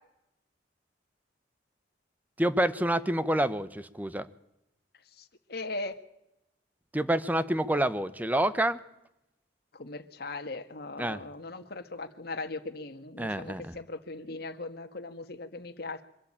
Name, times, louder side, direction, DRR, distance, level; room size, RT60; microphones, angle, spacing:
voice 1, 2.4-4.3 6.9-8.8 11.0-11.2 13.2-13.8, right 1 dB, 10° right, 14 dB, 0.9 m, -28 dB
voice 2, 5.2-5.9 9.7-16.0, left 2 dB, 60° left, 6 dB, 1.7 m, -39 dB
24.0 x 13.0 x 8.9 m, 0.86 s
head